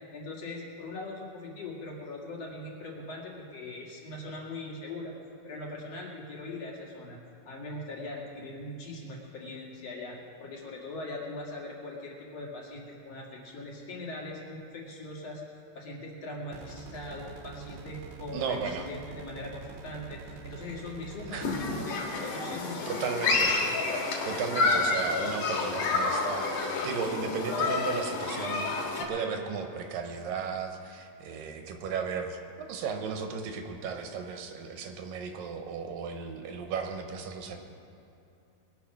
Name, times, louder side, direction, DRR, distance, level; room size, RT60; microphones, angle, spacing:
voice 1, 0.1-5.1 5.4-7.2 7.5-15.4 15.7-23.3, left 2 dB, 50° left, -2 dB, 2.9 m, -41 dB
sound 1, 16.5-21.8, right 5 dB, 70° right, 2.1 m, -45 dB
voice 2, 18.3-18.9 21.3-21.5 22.9-23.6 24.2-37.6, right 5 dB, 85° right, 5 dB, 2.8 m, -35 dB
Human group actions, 21.4-29.0, left 3 dB, 70° left, 3.3 m, -29 dB
21.0 x 8.1 x 6.0 m, 2.7 s
omnidirectional pair, 3.9 m